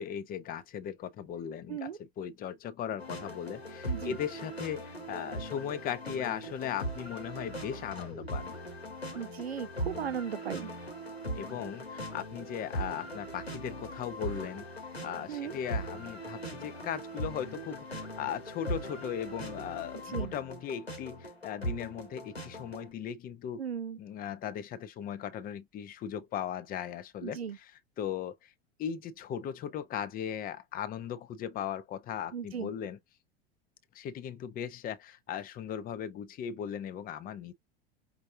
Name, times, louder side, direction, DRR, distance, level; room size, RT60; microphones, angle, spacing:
voice 1, 0.0-8.6 11.3-14.7 15.0-23.6 24.0-27.7 28.0-28.5 28.8-33.0 33.9-37.5, left 9 dB, 30° left, 0.8 m, -38 dB
sound 1, 3.0-22.9, right 1 dB, 90° left, 1.4 m, -40 dB
voice 2, 3.9-4.2 9.1-10.7 15.3-15.6 19.9-20.3 23.6-24.0 27.2-27.6 32.3-32.7, right 7 dB, 85° right, 0.6 m, -37 dB
5.4 x 2.3 x 3.7 m
figure-of-eight pair, 85°, 31 cm